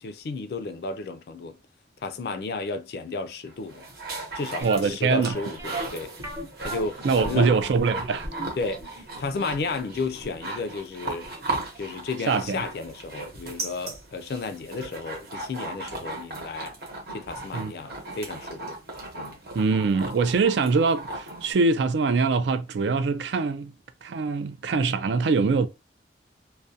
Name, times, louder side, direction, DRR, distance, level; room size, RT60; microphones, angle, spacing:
voice 1, 0.0-1.6 2.0-3.8 4.3-6.1 6.6-7.6 8.6-11.3 11.8-16.7 17.1-18.6 19.2-19.4, left 3 dB, 55° left, 0.3 m, -33 dB
sound 1, 3.5-21.5, right 2 dB, 55° right, 0.9 m, -37 dB
sound 2, 4.6-11.5 11.7-11.8 12.4-12.5 12.8-12.9, right 1 dB, 15° right, 0.5 m, -37 dB
voice 2, 4.6-5.4 7.0-8.3 12.3-12.6 17.5-17.7 19.5-23.7 24.0-25.7, right 4 dB, 75° right, 0.4 m, -23 dB
2.3 x 2.1 x 2.7 m
head